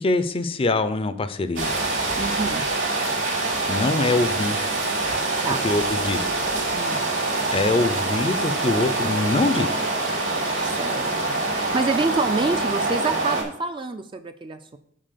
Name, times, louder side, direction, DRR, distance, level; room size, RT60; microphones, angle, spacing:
voice 1, 0.0-1.7 3.7-4.7 5.5-6.3 7.5-9.7, left 2 dB, 30° left, 11 dB, 0.5 m, -23 dB
sound 1, 1.6-13.4, right 2 dB, 80° right, 3.1 m, -25 dB
voice 2, 2.1-2.7 5.4-5.7 6.7-7.0 10.6-14.8, right 3 dB, 25° right, 7 dB, 0.4 m, -27 dB
7.5 x 4.3 x 6.7 m, 0.69 s
head